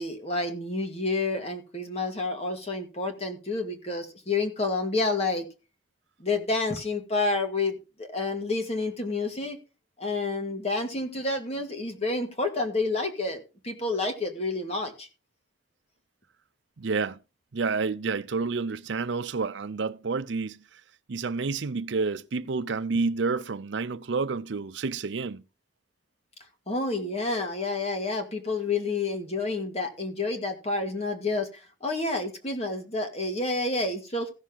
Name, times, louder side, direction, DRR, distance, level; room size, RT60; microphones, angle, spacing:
voice 1, 0.0-5.5 6.2-9.6 10.0-15.1 26.7-34.3, left 3 dB, 30° left, 1.9 m, -29 dB
voice 2, 16.8-17.2 17.5-20.8 21.1-25.4, right 4 dB, 65° right, 0.6 m, -29 dB
15.5 x 6.5 x 3.9 m
head